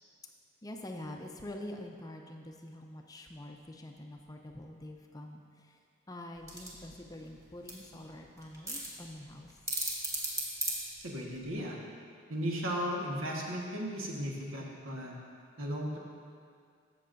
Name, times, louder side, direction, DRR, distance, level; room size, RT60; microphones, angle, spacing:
voice 1, 0.6-5.4 6.1-9.5, left 1 dB, 20° left, 2 dB, 0.5 m, -45 dB
sound 1, 6.4-11.5, right 1 dB, 15° right, 1.2 m, -38 dB
voice 2, 11.0-11.8 12.3-15.1 15.6-16.0, equal, 85° right, -2 dB, 1.4 m, -35 dB
13.5 x 7.3 x 2.6 m, 2.3 s
head